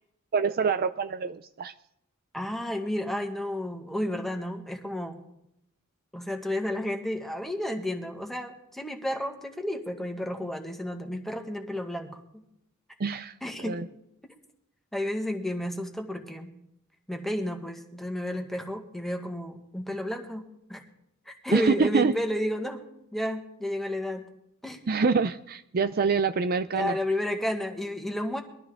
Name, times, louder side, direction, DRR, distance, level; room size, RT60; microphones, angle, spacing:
voice 1, 0.3-1.7 13.0-13.9 21.5-22.1 24.9-27.0, right 5 dB, 45° right, 10 dB, 0.5 m, -26 dB
voice 2, 2.3-5.1 6.1-12.4 13.4-13.8 14.9-16.5 17.1-20.8 21.3-22.8 23.1-24.2 24.6-24.8 26.7-28.4, left 1 dB, ahead, 3 dB, 1.7 m, -32 dB
22.0 x 13.0 x 3.7 m, 0.78 s
head